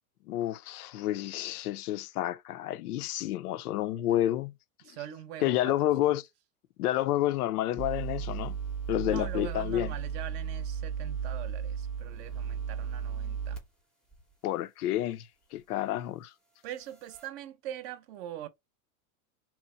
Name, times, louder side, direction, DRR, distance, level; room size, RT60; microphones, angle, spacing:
voice 1, 0.3-4.5 5.4-6.3 6.8-8.6 8.9-9.9 14.4-16.3, left 13 dB, 85° left, 0.6 m, -30 dB
voice 2, 4.8-5.9 9.0-13.6 16.6-18.5, right 11 dB, 45° right, 0.7 m, -42 dB
sound 1, 7.8-13.6 14.1-14.2 16.9-17.3, right 7 dB, ahead, 0.5 m, -35 dB
2.9 x 2.1 x 4.1 m
supercardioid pair, 140°, 44 cm